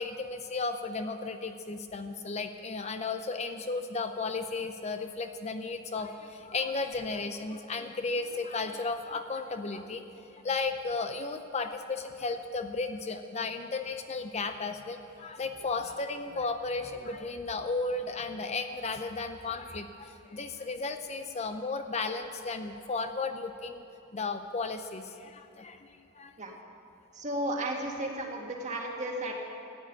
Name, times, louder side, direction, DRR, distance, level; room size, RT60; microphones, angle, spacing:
voice 1, 0.0-10.0 10.3-23.8 24.1-26.3, left 3 dB, 35° left, 7 dB, 0.6 m, -34 dB
voice 2, 27.1-29.3, right 1 dB, 35° right, 0 dB, 2.0 m, -33 dB
15.0 x 9.1 x 9.3 m, 2.9 s
head